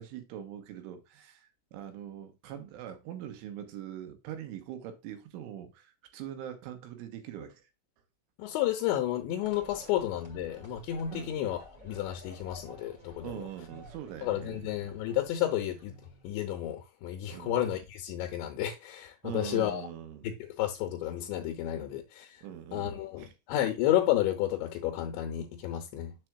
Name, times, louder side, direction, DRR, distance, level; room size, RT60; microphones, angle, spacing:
voice 1, 0.0-7.7 11.1-11.3 13.2-14.7 17.3-17.5 19.2-20.3 22.4-23.3, right 10 dB, 75° right, 3.4 m, -42 dB
voice 2, 8.4-13.5 14.2-16.0 16.2-19.9 20.2-22.4 22.7-26.2, left 12 dB, 80° left, 2.8 m, -31 dB
sound 1, 9.4-16.5, equal, 25° right, 1.0 m, -53 dB
7.6 x 7.6 x 2.4 m
omnidirectional pair, 5.9 m